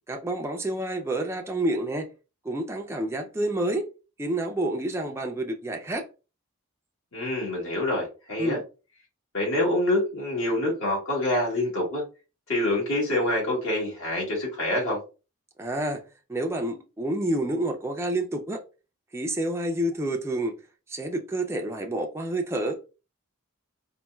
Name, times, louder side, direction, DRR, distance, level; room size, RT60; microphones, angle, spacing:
voice 1, 0.1-2.1 2.4-3.8 4.2-6.1 8.4-8.6 15.6-16.0 16.3-18.6 19.1-20.5 20.9-22.8, right 1 dB, 10° right, 0.3 m, -28 dB
voice 2, 7.1-8.6 9.3-12.0 12.5-15.0, left 1 dB, 65° left, 1.6 m, -26 dB
4.1 x 2.2 x 2.2 m
head